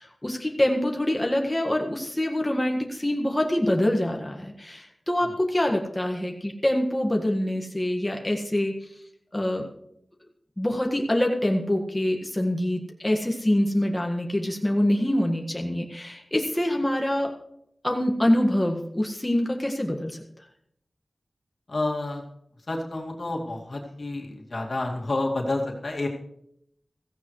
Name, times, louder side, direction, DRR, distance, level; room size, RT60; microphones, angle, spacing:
voice 1, 0.0-8.8 9.3-9.7 10.6-17.3 17.8-20.2, left 1 dB, 20° left, 1 dB, 1.7 m, -25 dB
voice 2, 21.7-22.2 22.7-26.1, left 2 dB, 65° left, 0 dB, 2.3 m, -29 dB
16.0 x 15.0 x 3.2 m, 0.73 s
wide cardioid pair, 60°, 0 cm